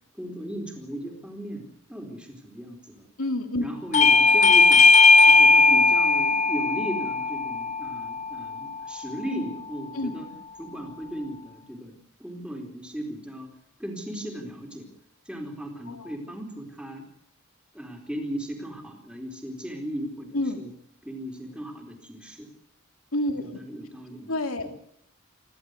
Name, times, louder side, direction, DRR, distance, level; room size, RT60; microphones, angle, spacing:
voice 1, 0.2-1.6 1.9-3.0 3.6-4.9 5.3-10.3 10.6-11.9 12.2-13.5 13.8-14.9 15.3-17.0 17.7-20.7 21.0-22.5 23.3-24.3 24.6-24.7, equal, 5° right, 3 dB, 4.3 m, -36 dB
voice 2, 3.2-3.7 9.9-10.1 15.9-16.1 20.3-20.6 23.1-23.6 24.3-24.7, left 1 dB, 85° left, 6 dB, 2.9 m, -28 dB
Bell / Doorbell, 3.9-9.1, left 3 dB, 35° left, 0.8 m, -18 dB
29.0 x 12.0 x 8.2 m, 0.71 s
head